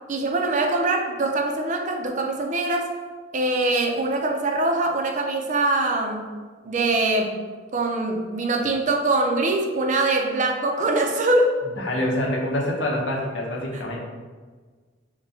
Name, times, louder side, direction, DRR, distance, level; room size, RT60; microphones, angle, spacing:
voice 1, 0.1-2.9 3.3-6.3 6.6-7.4 7.7-11.5 13.7-14.0, right 2 dB, 40° right, 3 dB, 0.5 m, -23 dB
voice 2, 11.8-14.0, left 1 dB, 80° left, -1 dB, 0.8 m, -26 dB
6.0 x 2.2 x 2.7 m, 1.4 s
head